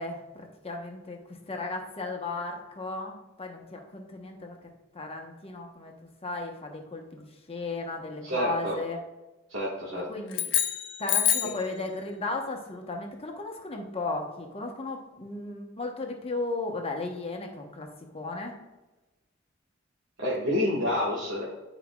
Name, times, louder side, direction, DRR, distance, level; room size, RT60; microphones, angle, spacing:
voice 1, 0.0-4.5 4.9-5.9 6.2-9.0 10.1-10.5 11.0-17.9 18.1-18.5, left 2 dB, 30° left, 2 dB, 1.0 m, -35 dB
voice 2, 8.2-8.8 9.5-10.0 20.2-21.4, left 1 dB, 65° right, -7 dB, 1.6 m, -28 dB
sound 1, 10.3-11.7, left 10 dB, 65° left, 0.7 m, -26 dB
10.0 x 5.0 x 2.3 m, 1.1 s
head